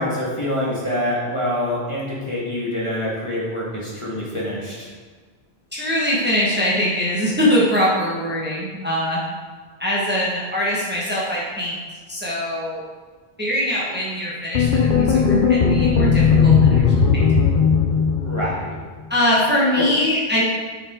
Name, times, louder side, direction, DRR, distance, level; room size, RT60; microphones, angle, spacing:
voice 1, 0.0-4.9 18.2-18.7 19.7-19.8, left 1 dB, 30° left, -6 dB, 1.6 m, -25 dB
voice 2, 5.7-9.2 9.8-11.8 12.1-12.8 13.4-16.8 17.1-17.4 19.1-20.4, left 1 dB, 10° right, -6 dB, 1.4 m, -22 dB
sound 1, 14.6-18.8, left 5 dB, 55° left, 0.8 m, -16 dB
7.9 x 6.0 x 3.7 m, 1.4 s
omnidirectional pair, 1.1 m